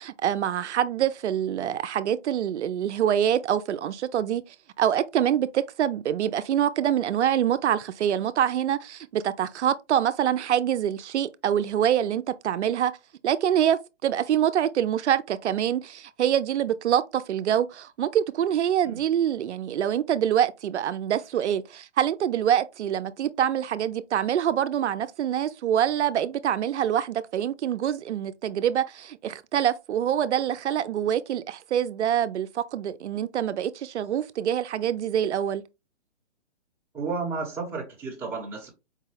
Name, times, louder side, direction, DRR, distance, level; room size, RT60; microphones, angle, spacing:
voice 1, 0.0-4.4 4.8-12.9 13.2-35.6, right 10 dB, 70° right, 0.5 m, -25 dB
voice 2, 36.9-38.7, right 4 dB, 5° right, 0.9 m, -32 dB
4.7 x 2.2 x 3.2 m
hypercardioid pair, 150°, 36 cm